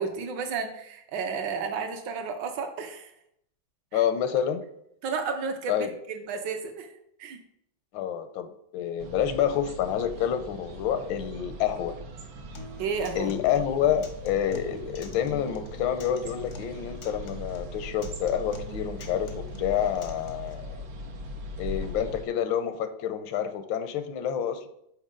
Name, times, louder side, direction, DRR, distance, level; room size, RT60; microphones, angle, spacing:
voice 1, 0.0-3.1 3.9-4.0 5.0-6.9 7.2-7.4 12.8-13.3, right 5 dB, 70° right, 5 dB, 1.3 m, -32 dB
voice 2, 3.9-4.7 5.7-5.9 7.9-12.0 13.1-20.8 21.6-24.7, left 9 dB, 85° left, 10 dB, 1.3 m, -28 dB
sound 1, 9.0-22.2, equal, 90° right, 1.6 m, -40 dB
Acoustic guitar, 12.5-20.5, left 3 dB, 65° left, 0.7 m, -46 dB
6.4 x 4.6 x 3.7 m, 0.75 s
omnidirectional pair, 2.1 m